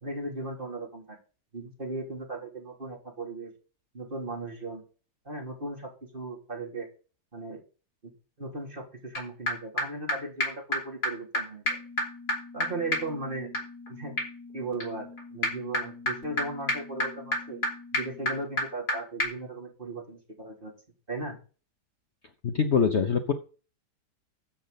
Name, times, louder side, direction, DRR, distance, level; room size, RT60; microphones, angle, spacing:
voice 1, 0.0-1.2 1.5-3.5 3.9-4.8 5.3-6.9 7.3-7.6 8.0-8.1 8.4-11.7 12.5-13.5 13.9-14.2 14.5-17.6 17.9-20.7 21.1-21.4, right 2 dB, 30° right, -1 dB, 3.5 m, -37 dB
sound 1, 9.2-9.3 9.5-9.6 9.8-9.9 10.1-10.2 10.4-10.5 10.7-10.8 11.0-11.1 11.3-11.4 11.7-18.9 19.2-19.3, left 1 dB, 65° left, 4.9 m, -32 dB
voice 2, 22.4-23.3, left 6 dB, 50° left, 6 dB, 1.1 m, -24 dB
13.5 x 7.8 x 4.1 m, 0.36 s
omnidirectional pair, 1.8 m